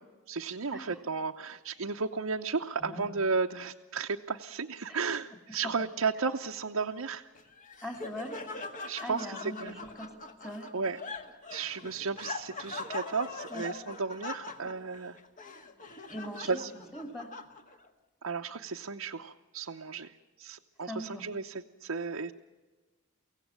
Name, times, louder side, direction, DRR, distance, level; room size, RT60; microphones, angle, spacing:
voice 1, 0.3-7.2 8.9-9.8 10.7-11.0 11.5-15.2 16.4-16.7 18.2-20.1 20.4-22.3, right 4 dB, 75° right, 2 dB, 0.8 m, -34 dB
Laughter, 7.4-17.9, left 3 dB, 35° left, 1.6 m, -42 dB
voice 2, 7.8-8.4 9.0-10.1 10.4-10.7 13.5-13.6 16.1-17.3 20.8-21.3, equal, 15° left, 4 dB, 2.6 m, -41 dB
24.5 x 16.5 x 8.9 m, 1.2 s
head